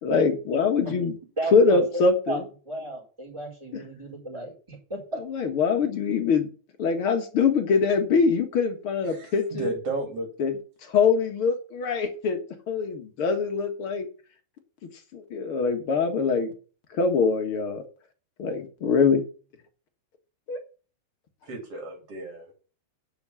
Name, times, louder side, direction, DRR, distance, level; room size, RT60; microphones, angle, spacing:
voice 1, 0.0-1.2 1.5-2.4 3.7-3.8 5.3-6.5 6.8-9.7 10.4-10.5 10.9-12.4 12.7-14.1 15.1-16.5 17.0-17.8 18.4-19.2 20.5-20.6, left 5 dB, 50° left, 2.3 m, -23 dB
voice 2, 1.4-2.0 2.3-5.2, right 2 dB, 10° right, 4.1 m, -34 dB
voice 3, 9.0-10.3 21.4-22.5, right 2 dB, 55° right, 3.6 m, -33 dB
10.0 x 6.2 x 7.0 m
omnidirectional pair, 3.3 m